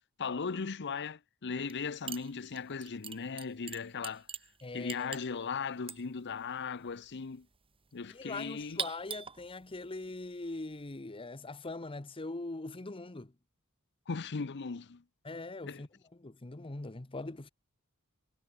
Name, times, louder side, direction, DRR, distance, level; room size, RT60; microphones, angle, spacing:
voice 1, 0.2-4.3 4.7-7.5 7.9-8.8 14.1-15.0 15.6-15.8, left 5 dB, 50° left, 0.7 m, -38 dB
sound 1, 1.6-1.8 2.1-11.0, right 6 dB, 25° right, 2.4 m, -44 dB
voice 2, 4.6-5.1 8.1-13.3 15.2-15.9 16.2-17.5, left 2 dB, 25° left, 0.9 m, -42 dB
head